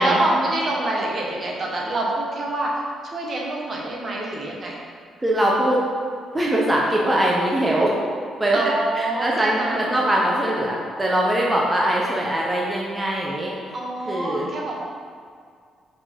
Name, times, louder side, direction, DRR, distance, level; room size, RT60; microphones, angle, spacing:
voice 1, 0.0-2.8 3.1-4.8 8.5-10.0 13.7-14.8, right 1 dB, 45° right, -2 dB, 1.4 m, -26 dB
voice 2, 5.2-5.8 6.3-8.6 8.9-13.6 14.1-14.5, right 1 dB, 15° right, -3 dB, 1.0 m, -22 dB
5.3 x 5.0 x 5.4 m, 2.1 s
cardioid pair, 90°, 0 cm